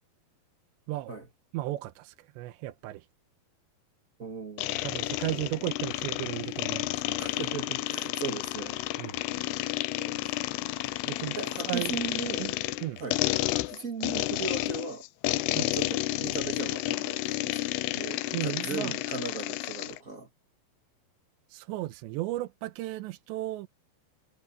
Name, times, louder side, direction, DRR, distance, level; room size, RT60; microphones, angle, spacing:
voice 1, 0.9-1.2 1.5-3.1 4.8-7.3 9.0-9.2 11.1-11.4 11.7-12.0 12.4-12.5 12.8-13.0 15.5-15.7 18.3-18.9 21.5-23.7, right 16 dB, 90° right, 3.1 m, -35 dB
voice 2, 4.2-4.8 5.3-5.5 7.2-8.8 10.0-10.2 11.4-12.5 13.0-13.2 13.5-15.0 15.7-20.3, right 4 dB, 40° right, 1.1 m, -37 dB
sound 1, 4.6-20.0, left 17 dB, 80° left, 2.5 m, -31 dB
omnidirectional pair, 5.0 m